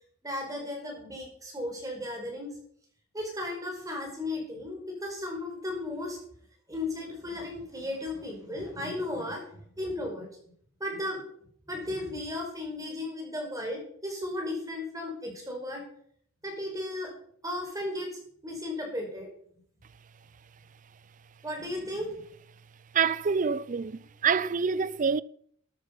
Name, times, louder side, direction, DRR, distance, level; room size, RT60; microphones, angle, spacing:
voice 1, 0.2-2.5 3.1-6.2 6.7-10.3 10.8-11.2 11.7-15.8 16.4-17.1 17.4-18.1 18.4-19.3 21.4-22.1, left 1 dB, 20° right, 5.2 m, -35 dB
voice 2, 22.9-25.2, right 6 dB, 40° right, 0.5 m, -26 dB
13.0 x 10.0 x 5.5 m
head